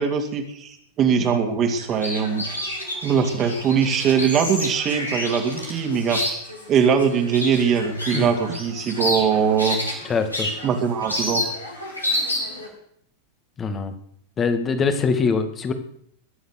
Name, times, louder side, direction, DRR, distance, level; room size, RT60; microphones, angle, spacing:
voice 1, 0.0-2.5 3.0-6.4 6.7-9.8 10.6-11.5, right 6 dB, 30° right, 5 dB, 2.6 m, -21 dB
sound 1, 1.8-12.7, left 1 dB, 85° left, 4.4 m, -29 dB
voice 2, 10.1-10.5 13.6-13.9 14.4-15.7, left 5 dB, 25° left, 8 dB, 2.1 m, -23 dB
21.5 x 7.9 x 6.6 m, 0.68 s
figure-of-eight pair, 90°, 0 cm